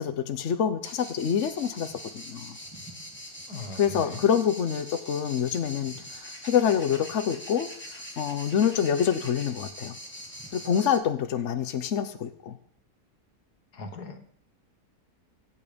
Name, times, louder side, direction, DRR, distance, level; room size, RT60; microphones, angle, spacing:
voice 1, 0.0-2.6 3.8-7.7 8.2-10.0 10.5-12.6, left 8 dB, 55° left, 9 dB, 1.1 m, -26 dB
sound 1, 0.8-11.0, equal, 5° left, 2.7 m, -43 dB
voice 2, 3.5-4.2 13.7-14.3, left 2 dB, 80° left, 7 dB, 2.3 m, -39 dB
24.0 x 8.8 x 5.2 m, 0.62 s
omnidirectional pair, 1.7 m